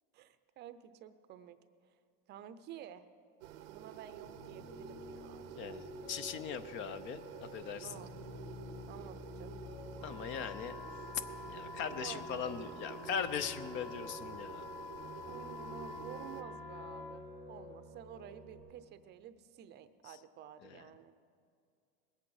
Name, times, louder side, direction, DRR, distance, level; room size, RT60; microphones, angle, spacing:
voice 1, 0.1-1.6 1.9-2.0 2.3-3.0 3.6-5.8 7.8-8.1 8.9-9.6 12.0-12.6 15.3-21.1, right 9 dB, 35° right, 12 dB, 0.6 m, -51 dB
sound 1, 3.4-16.4, right 12 dB, 80° right, 0.7 m, -50 dB
Piano, 4.3-18.6, left 2 dB, 85° left, 4.1 m, -50 dB
voice 2, 5.6-7.9 10.0-10.7 11.5-14.6 20.0-20.2 20.6-20.7, left 7 dB, 40° left, 13 dB, 0.6 m, -40 dB
sound 2, 10.0-17.2, left 4 dB, 20° left, 2.3 m, -48 dB
20.5 x 8.5 x 4.9 m, 2.3 s
supercardioid pair, 125°, 29 cm